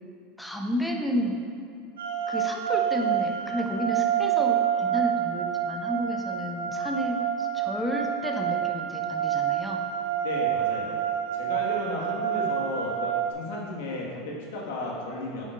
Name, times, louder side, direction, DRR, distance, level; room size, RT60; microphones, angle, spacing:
voice 1, 0.4-1.4 2.3-9.8, equal, 5° left, 2 dB, 1.0 m, -31 dB
sound 1, 2.0-13.3, right 10 dB, 90° right, 0.7 m, -28 dB
voice 2, 10.2-11.0 11.3-15.4, left 2 dB, 75° left, -2 dB, 1.8 m, -34 dB
9.5 x 8.1 x 2.6 m, 2.3 s
hypercardioid pair, 95°, 0 cm